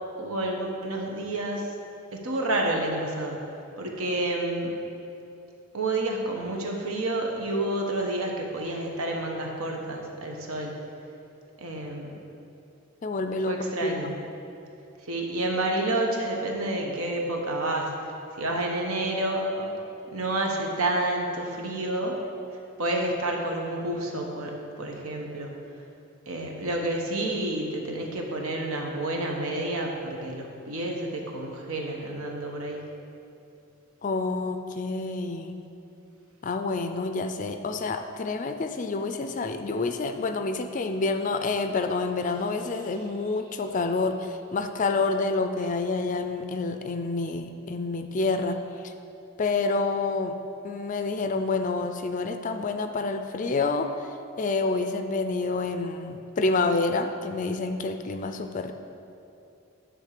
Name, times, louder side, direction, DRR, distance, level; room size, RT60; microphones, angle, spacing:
voice 1, 0.2-1.7 2.1-3.4 3.8-4.8 5.7-10.8 11.6-12.2 13.5-14.2 15.0-18.1 18.4-19.7 20.1-22.2 22.8-25.5 26.3-32.8, right 1 dB, 80° right, 1 dB, 1.2 m, -29 dB
voice 2, 13.0-14.2 34.0-35.6 36.4-48.9 49.4-50.4 50.6-58.7, left 3 dB, 35° left, 7 dB, 0.4 m, -28 dB
10.5 x 3.7 x 6.6 m, 2.8 s
head